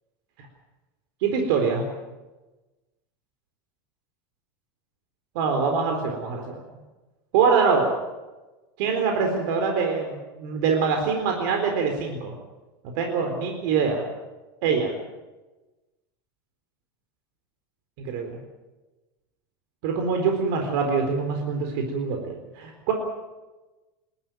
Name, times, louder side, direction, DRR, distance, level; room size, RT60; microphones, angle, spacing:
voice 1, 1.2-1.9 5.3-6.6 7.3-7.9 8.8-12.3 13.0-14.1 14.6-14.9 18.0-18.4 19.8-22.9, right 5 dB, 65° right, 3 dB, 4.0 m, -24 dB
29.0 x 12.5 x 9.2 m, 1.1 s
supercardioid pair, 155°, 12 cm